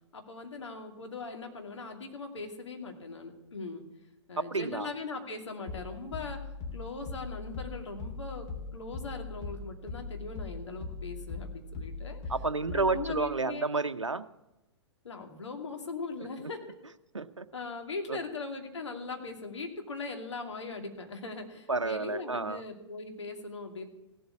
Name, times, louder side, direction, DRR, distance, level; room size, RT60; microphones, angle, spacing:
voice 1, 0.1-3.8 4.3-6.4 6.7-12.2 12.7-13.7 15.0-16.6 17.5-23.9, left 3 dB, 75° left, 4 dB, 2.5 m, -40 dB
voice 2, 4.4-4.9 12.3-14.3 17.1-17.5 18.1-18.2 21.7-22.6, right 3 dB, 90° right, 12 dB, 0.7 m, -30 dB
sound 1, 5.7-13.2, left 3 dB, 40° left, 3.3 m, -40 dB
16.5 x 7.9 x 8.5 m, 0.94 s
figure-of-eight pair, 110°, 15 cm